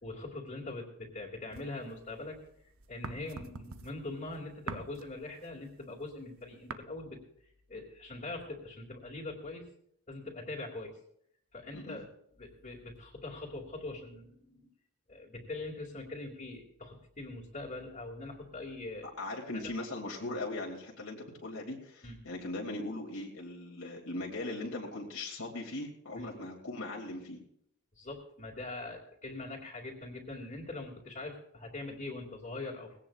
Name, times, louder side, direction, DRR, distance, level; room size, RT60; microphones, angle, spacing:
voice 1, 0.0-2.4 2.9-7.2 7.7-9.7 10.1-11.0 11.5-12.1 12.4-14.7 15.1-19.1 19.5-19.7 22.0-22.2 26.2-26.3 28.0-32.9, left 2 dB, 40° left, -6 dB, 2.3 m, -42 dB
sound 1, 1.5-2.4 2.7-6.7, right 4 dB, 70° right, 0.7 m, -44 dB
voice 2, 19.2-27.4, left 2 dB, 90° left, -2 dB, 2.8 m, -39 dB
20.5 x 17.0 x 2.5 m, 0.70 s
head